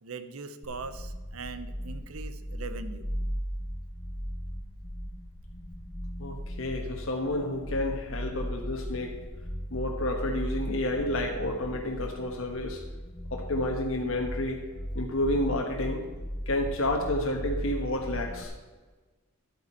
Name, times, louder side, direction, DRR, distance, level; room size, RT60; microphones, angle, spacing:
voice 1, 0.0-3.1, right 4 dB, 90° right, 11 dB, 0.8 m, -41 dB
sound 1, 0.6-18.4, equal, 20° left, 0.8 m, -37 dB
voice 2, 6.2-9.2 9.7-12.8 13.3-16.1 16.5-18.5, left 1 dB, 70° left, 1 dB, 1.2 m, -30 dB
11.5 x 8.6 x 4.4 m, 1.3 s
head